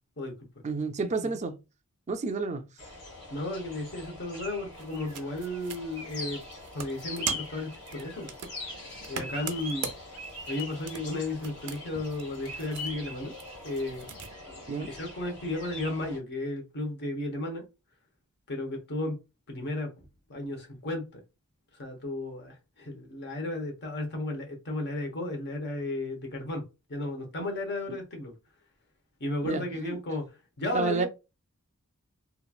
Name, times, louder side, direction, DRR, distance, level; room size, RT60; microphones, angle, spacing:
voice 1, 0.6-1.6 2.1-2.6 14.7-14.9 27.9-28.0 29.4-30.0 30.7-31.1, right 3 dB, 30° right, 0.4 m, -30 dB
sound 1, 2.8-16.2, left 1 dB, 90° left, 1.5 m, -42 dB
voice 2, 3.3-6.4 6.7-8.3 9.1-9.9 10.5-13.3 13.6-14.1 14.7-17.6 18.5-19.2 19.5-21.2 21.8-26.6 26.9-28.3 29.2-30.3 30.6-31.1, left 2 dB, 50° left, 0.9 m, -34 dB
sound 2, 4.7-14.3, right 7 dB, 85° right, 0.6 m, -42 dB
3.0 x 2.4 x 2.3 m
head